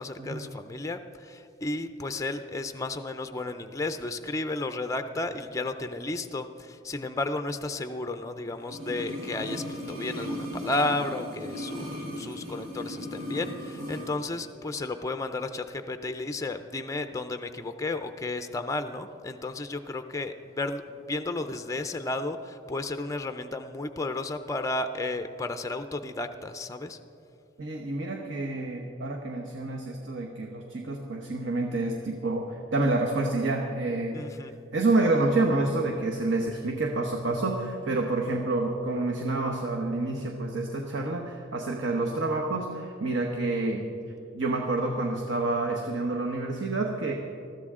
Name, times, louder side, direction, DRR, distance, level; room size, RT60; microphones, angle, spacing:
voice 1, 0.0-27.0 34.1-34.5, left 2 dB, 15° left, 8 dB, 0.4 m, -33 dB
sound 1, 8.6-14.1 14.4-14.5, equal, 85° right, 2.9 m, -37 dB
voice 2, 27.6-34.2 34.7-43.9 44.3-47.1, right 2 dB, 65° right, 1 dB, 1.1 m, -28 dB
20.5 x 14.0 x 3.7 m, 2.6 s
head